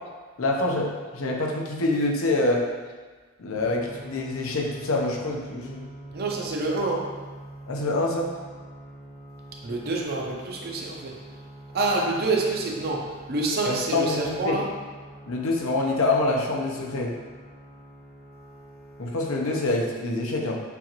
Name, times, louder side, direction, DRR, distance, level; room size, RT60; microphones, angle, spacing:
voice 1, 0.4-2.7 3.4-5.8 7.7-8.3 13.6-14.6 15.3-17.1 19.0-20.6, left 2 dB, 85° left, 0 dB, 0.7 m, -26 dB
sound 1, 3.5-19.7, right 1 dB, 60° left, 1.5 m, -45 dB
voice 2, 6.1-7.2 9.6-11.2 11.7-14.7, right 3 dB, 50° right, -1 dB, 0.6 m, -27 dB
6.8 x 2.5 x 3.0 m, 1.4 s
head